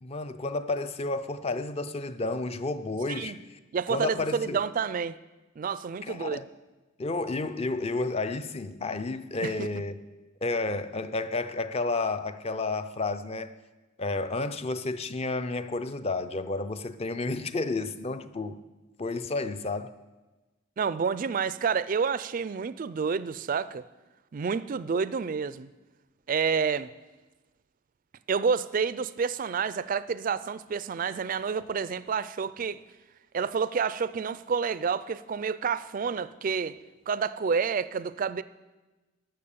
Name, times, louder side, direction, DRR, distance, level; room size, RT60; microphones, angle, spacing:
voice 1, 0.0-3.6 3.9-4.6 6.0-6.4 7.0-9.9 10.4-13.5 14.0-18.6 19.0-19.9, left 3 dB, 30° left, 0.5 m, -31 dB
voice 2, 3.7-5.2 5.6-6.4 9.4-9.8 20.8-23.8 24.3-25.7 26.3-26.9 28.3-32.8 33.3-36.8 37.1-38.4, right 6 dB, 40° right, 0.3 m, -29 dB
12.5 x 7.0 x 6.8 m
head